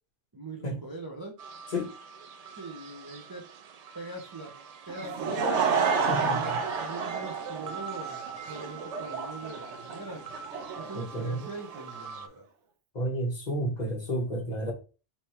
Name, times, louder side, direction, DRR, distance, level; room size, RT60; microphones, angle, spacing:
voice 1, 0.3-1.4 2.6-3.4 3.9-4.5 4.9-10.2 10.8-12.4, right 2 dB, 25° right, 0.6 m, -42 dB
sound 1, 1.4-12.3, right 6 dB, 65° right, 0.3 m, -43 dB
Laughter / Crowd, 4.9-11.8, right 5 dB, 85° right, 1.1 m, -30 dB
voice 2, 6.1-6.6 10.9-11.5 12.9-14.7, equal, 40° left, 1.2 m, -31 dB
3.4 x 3.0 x 4.3 m
omnidirectional pair, 1.2 m